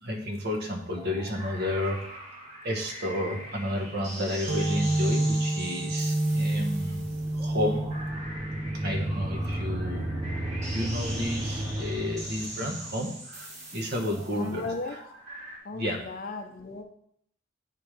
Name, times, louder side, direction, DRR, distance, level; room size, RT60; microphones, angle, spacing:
voice 1, 0.0-2.2 2.6-7.1 7.3-7.9 8.7-10.1 10.7-14.7 15.7-16.0, left 1 dB, 55° right, 2 dB, 1.2 m, -31 dB
sound 1, 0.9-15.6, right 1 dB, 35° right, 1.5 m, -42 dB
sound 2, 4.5-11.8, right 1 dB, 85° right, 1.4 m, -30 dB
sound 3, 6.1-13.0, right 1 dB, 20° right, 0.9 m, -34 dB
voice 2, 14.3-15.0 15.6-16.8, left 3 dB, 45° left, 6 dB, 0.7 m, -35 dB
9.1 x 3.2 x 5.0 m, 0.67 s
head